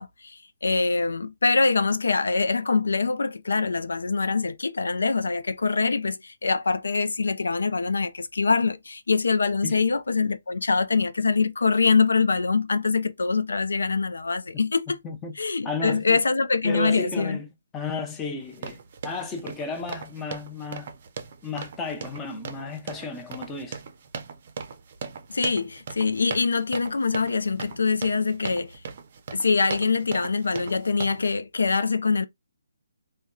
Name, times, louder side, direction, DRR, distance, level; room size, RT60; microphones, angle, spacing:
voice 1, 0.0-15.0 15.4-17.4 25.3-28.8 29.3-32.2, left 4 dB, 80° left, 0.4 m, -24 dB
voice 2, 15.0-15.4 15.6-16.2 16.6-17.5 17.7-20.9 21.4-23.8, left 3 dB, 15° left, 0.6 m, -33 dB
sound 1, 18.4-31.4, right 6 dB, 45° right, 0.5 m, -39 dB
3.5 x 2.2 x 2.2 m
hypercardioid pair, 150°, 0 cm